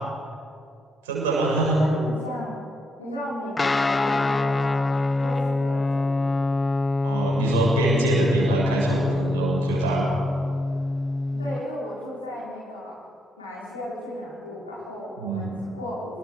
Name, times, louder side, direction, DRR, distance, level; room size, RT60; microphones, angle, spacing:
voice 1, 1.0-1.8 7.0-10.1 15.2-15.7, right 2 dB, 75° right, -5 dB, 7.0 m, -24 dB
voice 2, 1.7-2.6 3.0-4.8 5.2-6.2 11.3-13.0 13.4-16.2, equal, 85° left, -6 dB, 5.5 m, -35 dB
Guitar, 3.6-11.6, left 2 dB, 25° left, 0.5 m, -25 dB
29.0 x 20.0 x 5.1 m, 2.5 s
figure-of-eight pair, 40°, 0 cm